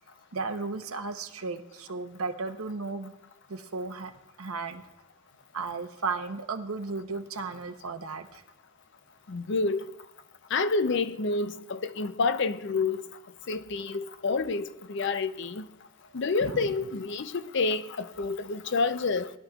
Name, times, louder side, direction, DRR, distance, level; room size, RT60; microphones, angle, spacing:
voice 1, 0.3-3.1 3.5-4.1 4.4-4.8 5.5-8.4 16.4-16.7, right 4 dB, 75° right, 0.9 m, -34 dB
voice 2, 9.3-9.9 10.5-13.0 13.5-15.7 16.1-19.3, left 4 dB, 50° left, 0.5 m, -28 dB
20.0 x 11.5 x 2.4 m
head